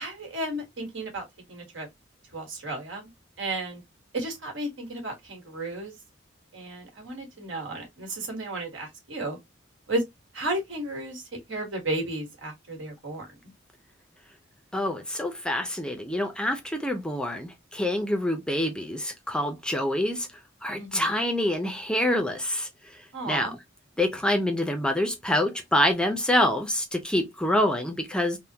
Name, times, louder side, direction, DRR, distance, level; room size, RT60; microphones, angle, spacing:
voice 1, 0.0-1.9 2.3-3.1 3.4-3.8 4.1-5.9 6.5-9.4 9.9-10.0 10.3-13.2 20.8-21.2 23.1-23.5, right 2 dB, 75° right, 1.5 m, -33 dB
voice 2, 14.7-20.3 20.6-22.7 23.3-23.6 24.0-28.4, left 1 dB, 5° left, 0.5 m, -26 dB
3.5 x 2.1 x 2.7 m
head